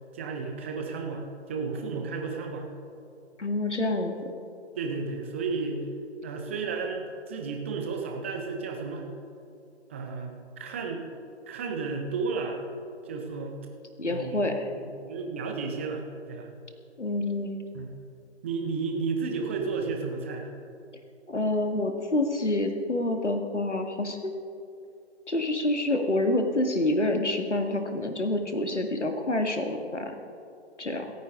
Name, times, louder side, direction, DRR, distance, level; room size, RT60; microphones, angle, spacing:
voice 1, 0.1-2.7 4.8-5.9 6.2-9.1 9.9-11.0 11.5-12.6 13.0-13.6 14.1-14.5 14.7-16.5 17.7-17.9 18.4-20.5, right 4 dB, 10° right, 3 dB, 0.6 m, -33 dB
voice 2, 3.4-4.3 14.0-14.7 17.0-17.6 21.3-24.3 25.3-30.2 30.8-31.1, left 1 dB, 80° left, 5 dB, 1.9 m, -27 dB
28.0 x 9.4 x 3.8 m, 2.5 s
figure-of-eight pair, 140°, 34 cm